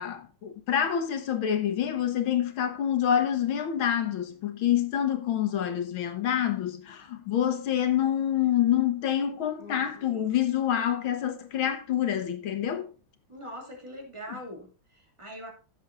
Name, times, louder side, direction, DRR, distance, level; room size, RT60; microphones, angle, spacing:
voice 1, 0.0-12.9, left 10 dB, 85° left, 2.1 m, -27 dB
voice 2, 9.6-10.3 13.3-15.5, equal, 15° right, 2.6 m, -43 dB
16.0 x 7.5 x 2.6 m
omnidirectional pair, 2.2 m